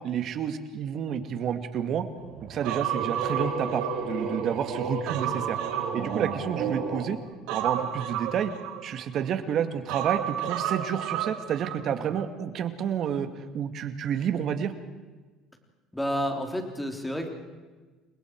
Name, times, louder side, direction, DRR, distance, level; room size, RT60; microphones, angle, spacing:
voice 1, 0.0-2.1 2.4-5.6 5.9-7.2 7.5-8.5 8.8-13.3 13.5-14.7, right 8 dB, 50° right, 9 dB, 2.1 m, -29 dB
sound 1, 2.2-7.1, right 4 dB, 65° right, 7.0 m, -33 dB
Human voice, 2.6-4.4 4.8-6.8 7.5-9.2 9.9-11.8 12.1-12.2, right 10 dB, 85° right, 3.0 m, -32 dB
voice 2, 15.9-17.3, equal, 5° left, 3 dB, 3.5 m, -30 dB
30.0 x 21.5 x 4.7 m, 1.3 s
cardioid pair, 125°, 0 cm